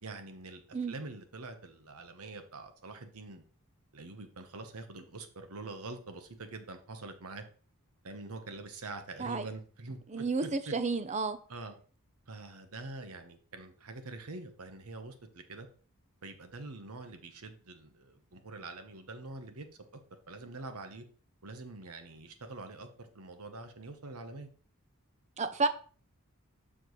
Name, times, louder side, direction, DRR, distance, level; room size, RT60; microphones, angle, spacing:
voice 1, 0.0-3.4 3.9-7.4 8.0-10.7 11.5-11.7 12.3-15.7 16.2-19.7 19.9-20.0 20.3-21.0 21.4-24.5, right 3 dB, 80° right, 1.0 m, -45 dB
voice 2, 10.1-11.4 25.4-25.7, right 3 dB, 30° right, 0.6 m, -31 dB
7.2 x 6.1 x 3.1 m
head